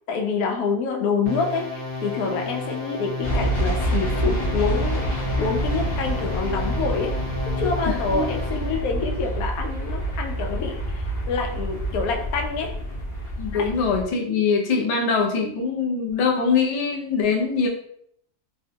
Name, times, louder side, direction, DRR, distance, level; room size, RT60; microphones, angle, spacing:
voice 1, 0.1-1.6 2.0-7.1 7.6-12.7 13.5-13.7, left 5 dB, 85° left, 2 dB, 1.1 m, -27 dB
sound 1, 1.3-8.8, left 2 dB, 55° right, 0.6 m, -32 dB
sound 2, 3.2-14.0, right 1 dB, 25° left, 0.7 m, -27 dB
voice 2, 7.9-8.3 13.4-17.7, left 5 dB, 70° left, -1 dB, 0.3 m, -23 dB
3.6 x 2.2 x 2.7 m, 0.69 s
omnidirectional pair, 1.5 m